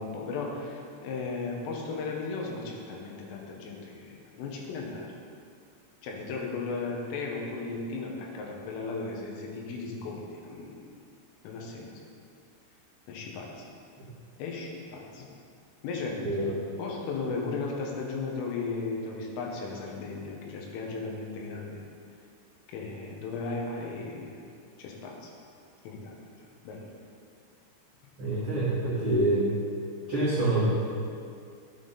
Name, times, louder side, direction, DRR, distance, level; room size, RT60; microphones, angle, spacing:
voice 1, 0.0-5.1 6.0-10.9 11.4-11.9 13.1-13.7 14.4-15.3 15.8-16.3 16.8-21.8 22.7-24.4 24.8-25.3 25.8-26.1 26.6-26.9, left 4 dB, 85° left, -1 dB, 4.0 m, -36 dB
voice 2, 16.2-16.5 28.2-29.5 30.1-30.7, right 2 dB, 60° right, -10 dB, 1.4 m, -26 dB
13.5 x 8.7 x 4.2 m, 2.3 s
omnidirectional pair, 5.7 m